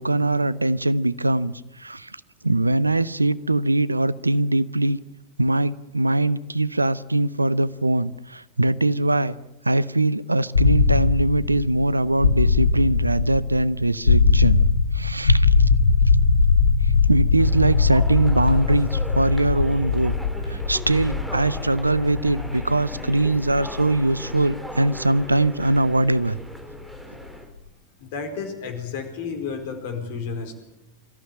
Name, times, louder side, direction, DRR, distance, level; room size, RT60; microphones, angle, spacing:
voice 1, 0.0-1.5 1.8-2.1 2.4-5.0 5.4-9.3 9.7-14.6 14.9-15.5 17.0-20.1 20.5-26.4, right 2 dB, 85° right, 18 dB, 0.7 m, -21 dB
sound 1, 10.5-26.4, left 4 dB, 75° left, 1.4 m, -21 dB
sound 2, 17.4-27.5, equal, ahead, 2.9 m, -38 dB
voice 2, 28.0-30.6, left 5 dB, 50° left, 7 dB, 4.5 m, -31 dB
24.0 x 14.5 x 9.2 m, 0.87 s
figure-of-eight pair, 90°, 0 cm